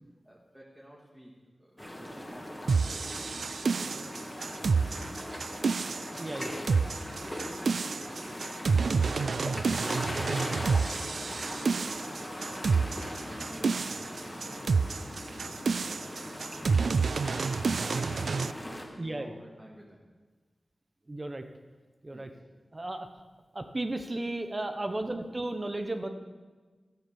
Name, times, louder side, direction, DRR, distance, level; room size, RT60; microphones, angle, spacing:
voice 1, 0.2-5.5 6.3-6.6 7.1-17.4 17.8-18.3 18.6-20.0 22.1-22.4 24.9-25.1, equal, 10° right, -4 dB, 2.2 m, -53 dB
sound 1, 1.8-18.8, left 1 dB, 15° left, 2.1 m, -39 dB
sound 2, 2.7-18.5, right 5 dB, 75° right, 0.3 m, -29 dB
voice 2, 6.2-6.5 12.0-12.1 19.0-19.4 21.1-21.4 22.0-22.3 22.7-23.1 23.5-26.1, right 2 dB, 30° right, 7 dB, 1.1 m, -34 dB
14.0 x 9.3 x 7.1 m, 1.4 s
wide cardioid pair, 100°, 0 cm